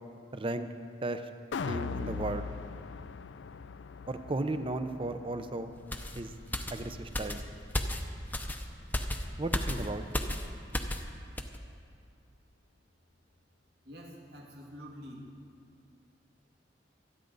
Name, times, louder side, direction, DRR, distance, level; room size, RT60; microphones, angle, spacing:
voice 1, 0.3-0.7 1.0-1.2 1.7-2.4 4.1-5.7 6.2-6.3 6.7-7.4 9.4-10.0, right 2 dB, 30° right, 9 dB, 0.7 m, -34 dB
sound 1, 1.5-7.7 8.1-8.2, left 5 dB, 90° left, 0.4 m, -41 dB
sound 2, 5.9-11.1 11.4-11.6, left 1 dB, 10° left, 0.7 m, -34 dB
voice 2, 13.8-15.3 15.9-16.0, equal, 65° right, -1 dB, 2.3 m, -47 dB
26.0 x 9.4 x 4.0 m, 2.3 s
head